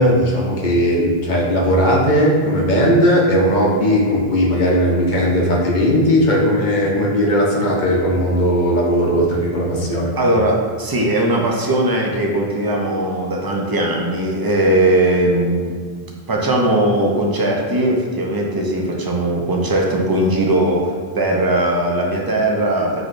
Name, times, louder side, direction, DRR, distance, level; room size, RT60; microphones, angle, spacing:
voice 1, 0.0-10.1, equal, 50° left, -3 dB, 0.9 m, -17 dB
voice 2, 10.2-23.0, right 1 dB, 30° right, -1 dB, 0.4 m, -19 dB
6.2 x 3.1 x 2.6 m, 1.6 s
omnidirectional pair, 1.1 m